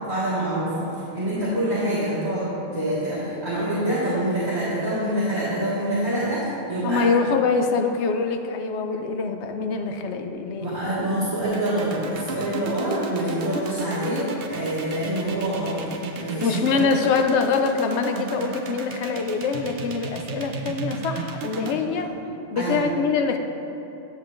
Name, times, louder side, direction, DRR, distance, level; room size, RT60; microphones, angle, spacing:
voice 1, 0.1-2.4 2.7-7.0 10.6-15.8 16.2-16.5 21.6-21.7 22.6-22.9, right 1 dB, 35° right, -13 dB, 1.9 m, -26 dB
voice 2, 6.8-10.7 16.4-22.1 22.5-23.4, left 5 dB, 85° left, 6 dB, 0.9 m, -24 dB
sound 1, 11.4-21.7, right 4 dB, 65° right, 0.8 m, -33 dB
9.4 x 7.1 x 2.5 m, 3.0 s
omnidirectional pair, 1.1 m